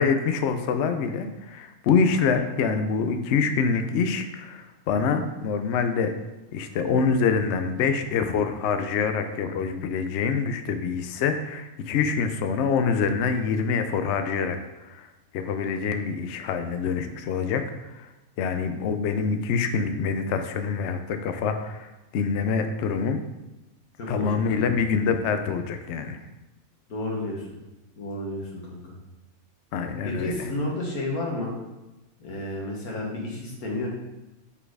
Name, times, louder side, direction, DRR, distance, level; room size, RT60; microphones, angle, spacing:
voice 1, 0.0-6.1 6.5-14.6 14.8-15.1 15.3-18.1 18.4-23.2 24.1-26.2 29.7-30.3, left 5 dB, 65° left, 7 dB, 0.7 m, -25 dB
voice 2, 26.9-27.5 28.0-28.9 30.0-31.5 32.2-33.9, left 2 dB, 85° left, -2 dB, 1.8 m, -31 dB
5.6 x 4.3 x 4.7 m, 1.0 s
omnidirectional pair, 1.5 m